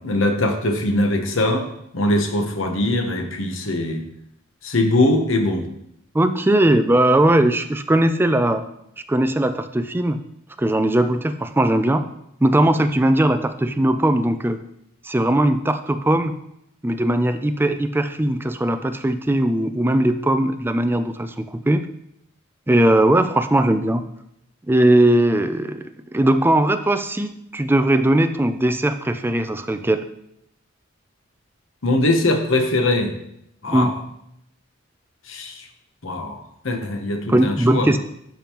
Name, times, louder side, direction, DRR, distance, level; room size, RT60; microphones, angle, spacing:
voice 1, 0.0-1.6 1.9-4.0 4.6-5.7 31.8-33.1 33.6-34.0 35.3-35.7 36.0-36.4 36.6-37.9, left 1 dB, 75° left, 4 dB, 1.1 m, -21 dB
voice 2, 6.1-8.7 9.1-10.2 10.6-12.0 12.4-14.6 15.0-16.3 16.8-21.9 22.7-24.1 24.7-30.0 33.7-34.0 37.3-38.0, right 1 dB, 10° right, 9 dB, 0.4 m, -19 dB
12.0 x 5.2 x 3.0 m, 0.77 s
head